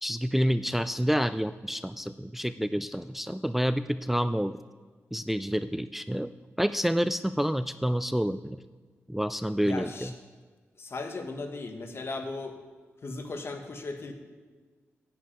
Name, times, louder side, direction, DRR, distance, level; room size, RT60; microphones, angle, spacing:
voice 1, 0.0-4.6 5.1-6.3 6.6-8.6 9.1-10.1, equal, 5° right, 12 dB, 0.3 m, -28 dB
voice 2, 9.6-10.1 10.8-12.6 13.0-14.1, left 3 dB, 55° left, 5 dB, 1.5 m, -37 dB
10.5 x 5.7 x 8.5 m, 1.4 s
cardioid pair, 60°, 5 cm